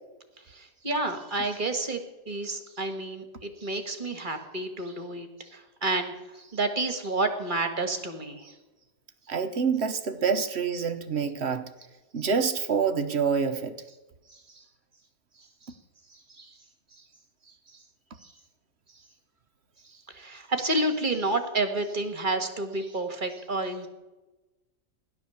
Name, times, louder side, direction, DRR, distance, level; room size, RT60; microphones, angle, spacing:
voice 1, 0.5-2.0 2.3-8.5 14.3-14.4 16.4-16.5 20.1-23.9, right 2 dB, 30° right, 1.7 m, -30 dB
voice 2, 9.3-11.7 12.1-13.8, right 6 dB, 45° right, 1.1 m, -27 dB
16.5 x 11.5 x 7.1 m
omnidirectional pair, 1.8 m